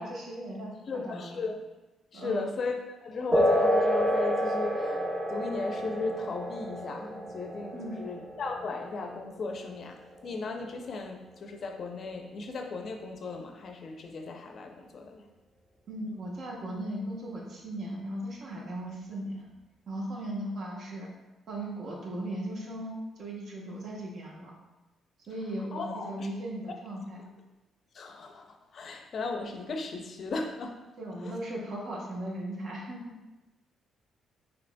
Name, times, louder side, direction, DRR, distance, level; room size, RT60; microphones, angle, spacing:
voice 1, 0.0-1.4 2.1-2.5 7.7-7.9 15.9-19.5 19.9-21.1 21.5-24.5 25.3-27.3 31.0-33.1, right 1 dB, 60° right, -3 dB, 1.0 m, -37 dB
voice 2, 0.9-1.6 2.1-2.7 3.0-15.3 25.7-26.3 27.9-30.8 31.2-31.3, left 3 dB, 55° left, 3 dB, 0.5 m, -36 dB
sound 1, 3.3-11.3, equal, 25° right, 0.8 m, -30 dB
5.1 x 2.9 x 2.2 m, 1.1 s
cardioid pair, 90°, 0 cm